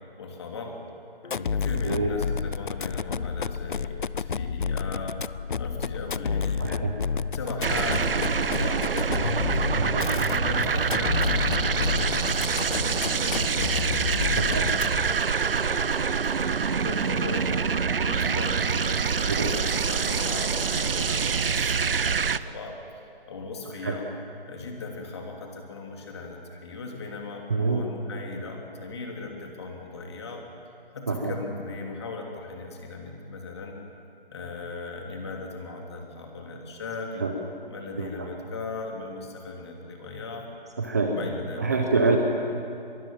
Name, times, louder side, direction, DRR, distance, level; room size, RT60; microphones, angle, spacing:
voice 1, 0.2-0.7 1.2-5.2 5.6-15.9 16.4-17.7 18.0-24.0 24.4-30.4 30.9-33.8 34.3-37.3 37.7-40.4 41.1-41.9, left 3 dB, 30° left, 1 dB, 2.9 m, -38 dB
sound 1, 1.2-15.2, left 6 dB, 60° left, 0.5 m, -30 dB
voice 2, 6.6-7.0 9.8-10.1 14.4-14.7 19.4-19.5 23.8-24.0 27.5-27.8 31.1-31.3 37.2-37.3 38.0-38.3 40.8-41.2 41.6-42.2, right 4 dB, 20° right, 2 dB, 0.8 m, -26 dB
sound 2, 7.6-22.4, right 6 dB, 70° right, 0.8 m, -26 dB
24.0 x 23.0 x 7.4 m, 2.6 s
figure-of-eight pair, 170°, 29 cm